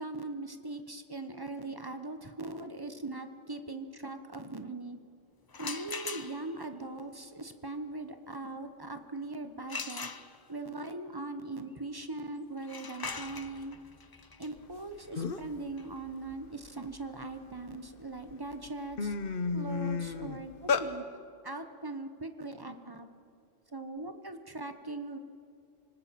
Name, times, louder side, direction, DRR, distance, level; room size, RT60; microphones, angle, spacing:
voice 1, 0.0-5.0 5.6-10.1 10.5-13.8 14.4-19.1 19.5-21.0 21.4-23.1 23.7-25.2, right 2 dB, 20° right, 8 dB, 0.9 m, -40 dB
sound 1, 5.5-6.7 9.7-10.7 12.6-18.3, left 4 dB, 30° left, 0.4 m, -43 dB
sound 2, 14.8-14.9 15.2-15.6 16.0-17.6 18.2-18.3 18.6-20.9, left 5 dB, 50° left, 1.0 m, -32 dB
25.5 x 19.0 x 5.8 m, 2.4 s
omnidirectional pair, 1.3 m